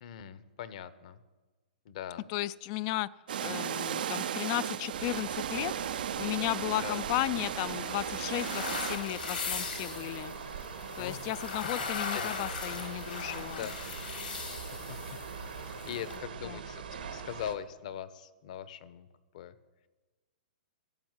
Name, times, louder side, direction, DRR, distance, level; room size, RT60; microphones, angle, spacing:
voice 1, 0.0-1.2 1.8-2.3 6.8-7.1 11.0-11.3 12.1-12.4 13.5-13.8 14.9-15.0 15.5-16.8 17.1-19.1 19.3-19.5, left 10 dB, 55° left, 15 dB, 1.0 m, -41 dB
voice 2, 2.3-3.1 3.4-5.7 6.2-10.3 11.0-13.7 16.4-16.6, left 18 dB, 35° left, 20 dB, 0.4 m, -34 dB
sound 1, 3.3-9.0, right 9 dB, 70° right, 0.6 m, -36 dB
sound 2, 4.9-17.6, right 6 dB, 85° right, 2.0 m, -42 dB
sound 3, 6.5-16.2, left 5 dB, 85° left, 4.4 m, -40 dB
14.5 x 7.1 x 9.9 m, 1.2 s
hypercardioid pair, 145°, 5 cm